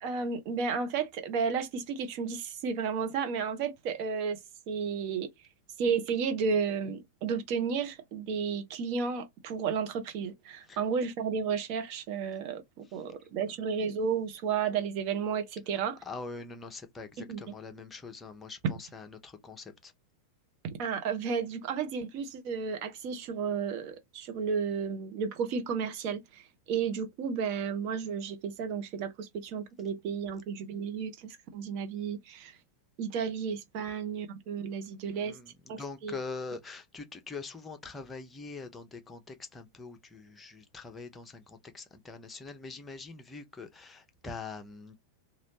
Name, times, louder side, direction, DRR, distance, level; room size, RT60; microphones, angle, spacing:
voice 1, 0.0-4.4 4.7-5.3 5.8-16.0 17.3-17.4 20.6-32.6 33.0-35.4 35.7-36.1, right 6 dB, 45° right, 0.8 m, -32 dB
voice 2, 16.0-19.9 35.1-45.0, left 4 dB, 15° left, 0.8 m, -43 dB
3.1 x 2.5 x 2.9 m
figure-of-eight pair, 90°, 0 cm